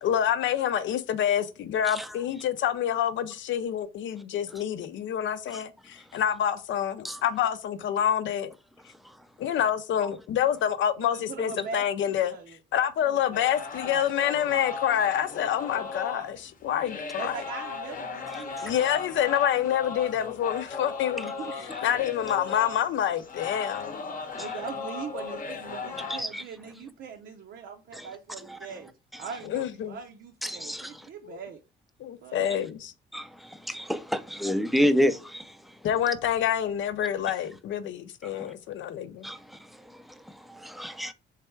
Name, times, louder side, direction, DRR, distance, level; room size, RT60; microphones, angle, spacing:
voice 1, 0.0-8.5 9.4-12.4 12.7-17.4 18.6-24.0 29.4-30.0 31.2-31.4 32.0-32.9 35.8-39.3, left 10 dB, 70° left, 0.6 m, -27 dB
voice 2, 11.0-12.6 13.0-13.5 13.8-14.0 17.2-18.6 21.2-21.7 24.3-28.9 29.2-31.6 32.2-32.4, right 6 dB, 65° right, 0.6 m, -41 dB
sound 1, 13.3-26.2, left 5 dB, 40° left, 0.8 m, -37 dB
voice 3, 30.4-30.9 33.1-35.5 38.2-38.5 39.2-39.4 40.3-40.7, equal, ahead, 0.4 m, -28 dB
3.4 x 3.3 x 4.4 m
cardioid pair, 90°, 20 cm